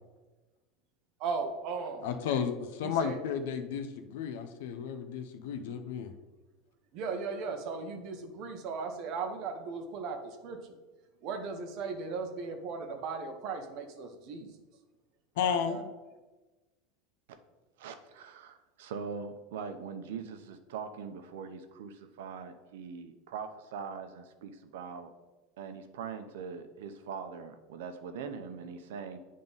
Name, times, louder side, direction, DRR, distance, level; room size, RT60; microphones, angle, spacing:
voice 1, 1.2-2.1 2.8-3.2 6.9-10.6 11.2-14.5 15.4-15.8, right 4 dB, 40° right, 5 dB, 0.9 m, -37 dB
voice 2, 2.0-6.1 15.4-15.8, left 7 dB, 80° left, 7 dB, 0.6 m, -33 dB
voice 3, 17.8-25.1 25.6-29.2, right 6 dB, 85° right, 8 dB, 0.7 m, -42 dB
8.8 x 3.7 x 4.0 m, 1.2 s
supercardioid pair, 175°, 0 cm